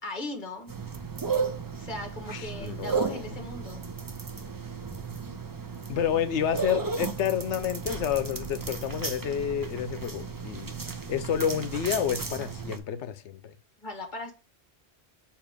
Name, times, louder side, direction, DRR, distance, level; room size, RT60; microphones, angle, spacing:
voice 1, 0.0-0.7 1.8-3.8 13.8-14.3, left 2 dB, 45° left, 1.4 m, -38 dB
sound 1, 0.7-12.8, right 5 dB, 25° right, 0.5 m, -34 dB
voice 2, 2.3-3.2 5.9-10.7 11.1-13.5, left 9 dB, 85° left, 1.0 m, -29 dB
6.9 x 2.9 x 5.0 m
omnidirectional pair, 1.1 m